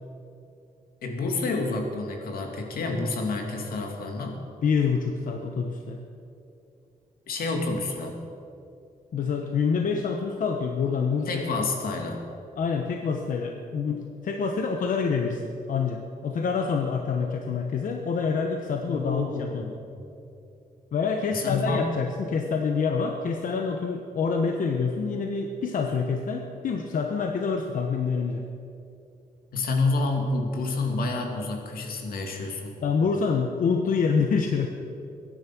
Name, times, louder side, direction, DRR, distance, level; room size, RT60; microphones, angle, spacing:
voice 1, 1.0-4.4 7.3-8.2 11.3-12.2 18.9-19.5 19.9-20.0 21.3-21.8 29.5-32.8, left 3 dB, 85° left, 3 dB, 2.5 m, -28 dB
voice 2, 4.6-6.0 9.1-11.4 12.6-19.7 20.9-28.4 32.8-34.7, left 5 dB, 65° left, 3 dB, 1.1 m, -26 dB
22.0 x 10.5 x 6.1 m, 2.6 s
wide cardioid pair, 130°, 15 cm